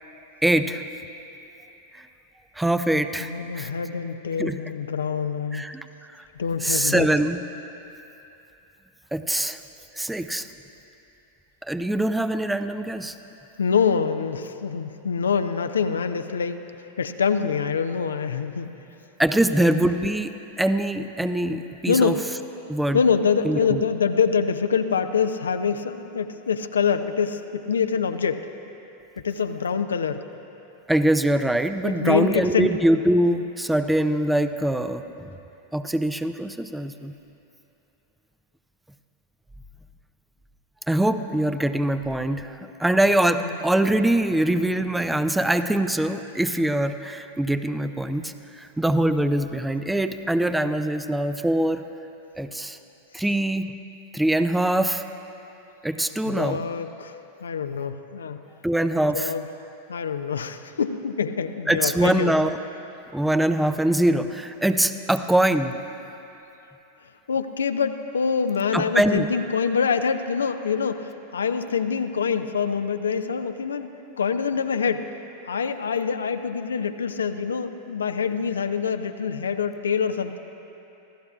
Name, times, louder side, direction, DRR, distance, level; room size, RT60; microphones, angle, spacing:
voice 1, 0.4-0.8 1.9-2.1 2.6-3.3 3.6-3.7 4.4-4.6 5.5-5.8 6.1-6.2 6.6-7.4 9.1-9.6 9.9-10.5 11.6-13.1 19.2-20.3 20.6-22.1 22.7-23.0 23.4-23.8 30.9-35.3 35.7-37.1 40.9-51.8 52.4-52.8 53.1-53.7 54.1-55.0 55.8-56.6 58.6-59.3 61.7-62.6 63.1-65.7 68.7-69.3, right 1 dB, 5° right, 10 dB, 0.5 m, -23 dB
voice 2, 3.2-5.8 6.4-7.1 13.6-16.6 17.0-18.7 19.6-19.7 21.9-22.2 22.9-28.5 29.2-30.2 31.8-32.8 43.4-43.6 56.2-58.4 59.1-59.4 59.9-62.3 67.3-75.1 75.5-80.4, left 6 dB, 70° left, 9 dB, 0.5 m, -25 dB
26.5 x 15.5 x 2.4 m, 2.9 s
figure-of-eight pair, 90°, 0 cm